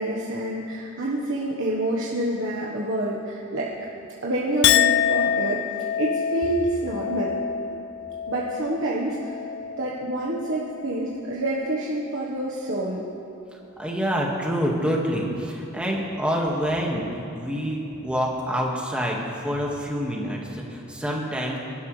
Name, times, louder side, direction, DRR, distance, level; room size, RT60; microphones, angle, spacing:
voice 1, 0.0-3.7 4.2-5.6 6.0-7.3 8.3-9.4 9.8-13.0, right 1 dB, 65° right, -5 dB, 1.4 m, -27 dB
Chink clink, 4.6-11.2 11.6-12.2, left 9 dB, 55° left, 0.3 m, -27 dB
voice 2, 13.8-21.6, equal, 5° right, -2 dB, 1.9 m, -27 dB
25.0 x 12.5 x 3.4 m, 2.8 s
head